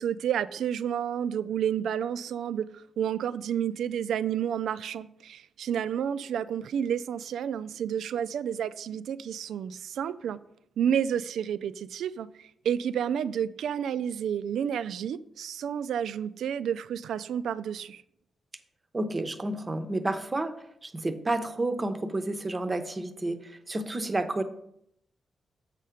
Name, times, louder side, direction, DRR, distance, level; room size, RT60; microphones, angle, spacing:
voice 1, 0.0-2.7 3.0-10.4 10.8-18.0, right 8 dB, 90° right, 0.3 m, -30 dB
voice 2, 18.9-20.5 20.8-24.4, right 2 dB, 20° right, 0.6 m, -30 dB
7.4 x 4.9 x 5.7 m
wide cardioid pair, 145°, 0 cm